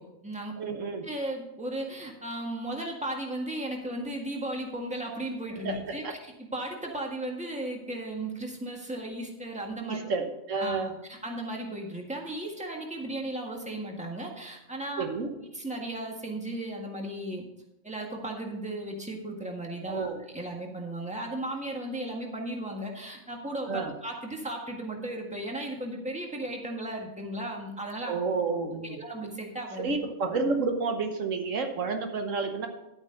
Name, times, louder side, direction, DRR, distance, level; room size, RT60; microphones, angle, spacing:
voice 1, 0.0-0.6 1.0-10.0 10.6-10.8 11.1-15.0 15.5-17.4 17.8-28.1 28.8-29.9, right 1 dB, 5° right, 0 dB, 1.6 m, -35 dB
voice 2, 0.6-1.1 5.6-6.1 9.9-10.9 15.0-15.3 19.9-20.2 23.7-23.9 28.1-29.0 29.8-32.7, right 4 dB, 75° right, 5 dB, 1.4 m, -30 dB
11.0 x 8.7 x 3.9 m, 0.92 s
omnidirectional pair, 1.3 m